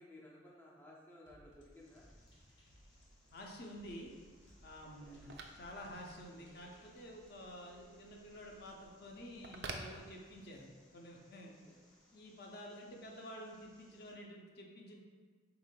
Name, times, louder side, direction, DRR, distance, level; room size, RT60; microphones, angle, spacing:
voice 1, 0.0-2.1 5.0-5.2 11.4-11.8, left 1 dB, 10° left, -4 dB, 0.4 m, -58 dB
sound 1, 1.3-6.9, equal, 85° left, 0.9 m, -65 dB
sound 2, 1.7-14.1, left 1 dB, 40° left, 1.1 m, -69 dB
Telephone, 2.9-10.7, right 3 dB, 60° right, 0.4 m, -53 dB
voice 2, 3.3-4.1 4.6-10.7 10.9-11.5 12.1-15.0, equal, 55° left, 0 dB, 0.6 m, -50 dB
4.8 x 3.6 x 2.2 m, 1.5 s
head